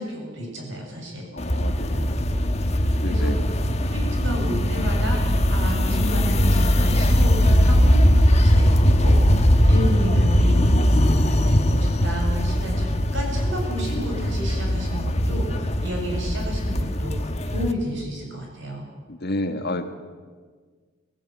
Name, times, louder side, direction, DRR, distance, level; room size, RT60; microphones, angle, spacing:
voice 1, 0.0-1.3 3.0-18.9, equal, 65° right, 0 dB, 7.6 m, -32 dB
voice 2, 1.3-2.2 3.0-3.4 19.1-19.9, left 1 dB, 50° left, 7 dB, 1.7 m, -30 dB
sound 1, 1.4-17.7, equal, 30° left, 1.2 m, -20 dB
20.5 x 16.0 x 9.4 m, 1.5 s
head